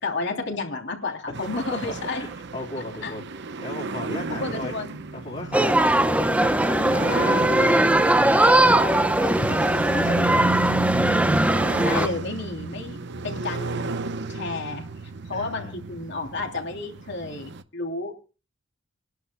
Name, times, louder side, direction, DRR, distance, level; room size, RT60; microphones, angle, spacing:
voice 1, 0.0-2.2 3.0-3.1 4.3-5.0 7.1-8.0 11.8-13.0 13.2-14.0 14.3-14.9 15.3-18.1, left 3 dB, 65° left, 2 dB, 3.0 m, -32 dB
sound 1, 1.3-17.6, right 3 dB, 60° right, 0.8 m, -33 dB
voice 2, 2.1-3.3 3.6-4.7 5.1-10.6 15.3-15.7, left 2 dB, 35° left, -3 dB, 3.1 m, -36 dB
sound 2, 5.5-12.1, right 1 dB, 5° right, 0.7 m, -20 dB
29.5 x 11.5 x 2.2 m, 0.35 s
head